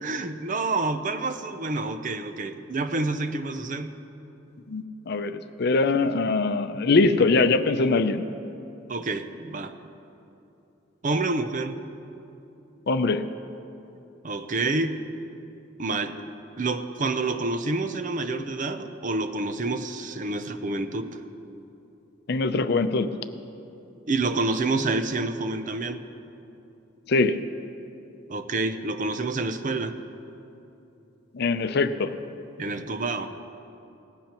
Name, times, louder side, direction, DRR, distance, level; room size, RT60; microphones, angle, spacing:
voice 1, 0.0-3.9 8.9-9.8 11.0-11.8 14.2-15.0 15.8-16.2 16.6-21.2 24.1-26.0 28.3-29.9 32.6-33.3, right 3 dB, 45° right, 9 dB, 0.6 m, -28 dB
voice 2, 4.7-8.2 12.9-13.2 22.3-23.1 27.1-27.4 31.3-32.1, left 3 dB, 55° left, 10 dB, 0.6 m, -22 dB
18.5 x 15.5 x 3.0 m, 2.8 s
head